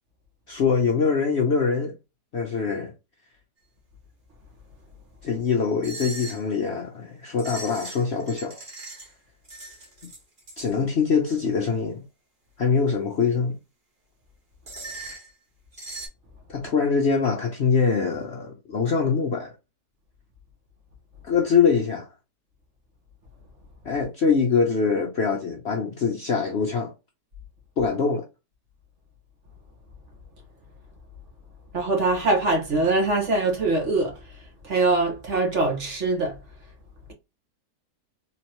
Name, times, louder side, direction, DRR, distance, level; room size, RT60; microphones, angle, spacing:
voice 1, 0.5-1.9 2.3-2.9 5.2-8.6 10.6-12.0 12.6-13.6 16.5-19.5 21.2-22.1 23.8-26.9 27.8-28.2, left 5 dB, 60° left, 0.7 m, -23 dB
sound 1, 5.8-6.5 7.4-9.1 9.5-10.7 14.7-15.3 15.7-16.1, right 2 dB, 35° right, 1.4 m, -39 dB
voice 2, 31.7-34.2 34.6-36.4, right 2 dB, 50° right, 1.5 m, -23 dB
3.8 x 3.0 x 2.9 m
omnidirectional pair, 1.7 m